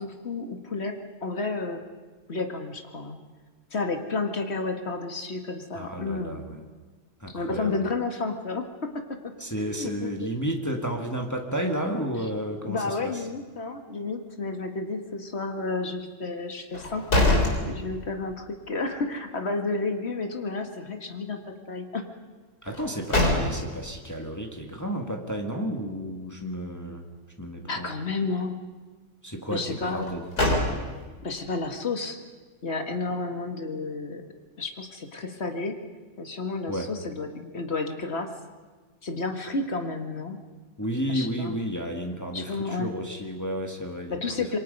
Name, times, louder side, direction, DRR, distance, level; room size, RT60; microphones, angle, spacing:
voice 1, 0.0-1.8 2.3-3.2 3.7-6.4 7.3-8.7 9.6-10.4 12.6-17.0 17.7-21.4 21.7-22.0 27.6-28.6 29.5-30.1 31.2-32.2 32.6-34.2 34.6-35.8 36.2-38.3 39.0-40.4 41.1-41.5 42.3-42.9 44.1-44.6, left 3 dB, 45° left, 5 dB, 2.0 m, -31 dB
voice 2, 5.7-6.6 7.2-7.8 9.4-13.2 22.6-27.1 27.4-27.9 29.2-30.3 36.7-36.9 40.8-44.5, equal, 10° left, 2 dB, 1.9 m, -32 dB
sound 1, 16.7-18.4 18.7-18.8 22.6-23.9 29.9-31.2, left 2 dB, 85° left, 4.3 m, -25 dB
27.0 x 23.0 x 5.4 m, 1.3 s
omnidirectional pair, 1.6 m